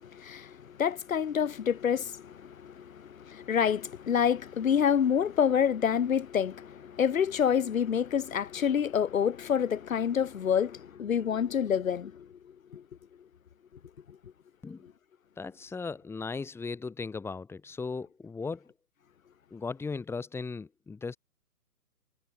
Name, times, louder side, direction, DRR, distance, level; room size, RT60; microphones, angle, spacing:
voice 1, 0.0-12.3 12.7-12.8, left 8 dB, 60° left, 6.6 m, -28 dB
voice 2, 15.4-18.7 19.5-21.2, left 4 dB, 5° left, 6.5 m, -37 dB
hypercardioid pair, 160°, 46 cm